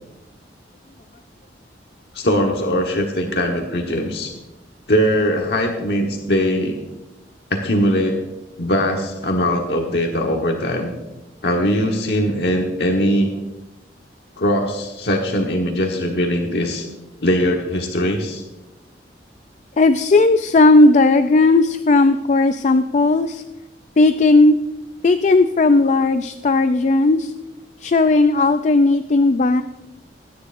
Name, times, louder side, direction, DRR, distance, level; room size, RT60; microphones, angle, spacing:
voice 1, 2.1-4.3 4.9-6.8 7.5-8.2 8.6-10.9 11.4-13.3 14.4-16.8 17.2-18.4, equal, 65° left, 1 dB, 1.2 m, -20 dB
voice 2, 19.8-23.4 24.0-24.6 25.0-27.3 27.8-29.6, left 2 dB, 40° left, 10 dB, 0.4 m, -15 dB
20.5 x 9.6 x 2.6 m, 1.0 s
head